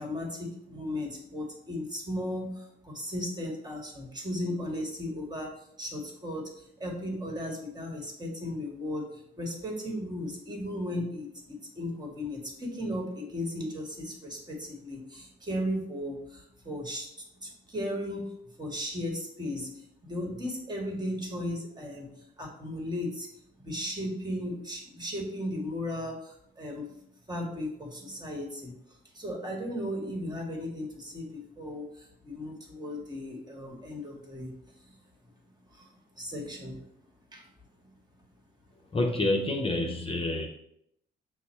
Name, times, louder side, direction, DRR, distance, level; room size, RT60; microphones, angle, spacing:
voice 1, 0.0-17.1 17.4-18.3 18.6-23.3 23.6-26.9 27.3-35.0 35.7-35.9 36.2-36.8 37.3-37.4 37.8-37.9, left 1 dB, 20° right, 0 dB, 1.3 m, -36 dB
voice 2, 38.9-40.5, left 2 dB, 30° left, 0 dB, 0.6 m, -28 dB
5.6 x 2.1 x 4.3 m, 0.75 s
cardioid pair, 90°, 20 cm